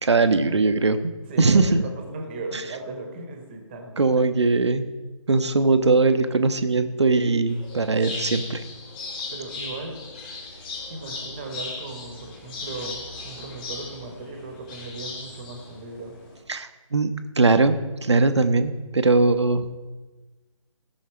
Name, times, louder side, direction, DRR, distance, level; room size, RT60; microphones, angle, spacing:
voice 1, 0.0-1.0 1.4-1.8 4.0-4.9 5.3-8.6 16.5-17.1 17.4-19.6, right 3 dB, 55° right, 10 dB, 0.9 m, -20 dB
voice 2, 1.3-4.1 9.3-10.0 10.9-16.2, right 3 dB, 20° right, 3 dB, 1.3 m, -37 dB
sound 1, 7.5-16.4, left 3 dB, 15° left, 1.7 m, -37 dB
17.0 x 6.4 x 4.6 m, 1.2 s
figure-of-eight pair, 150°, 17 cm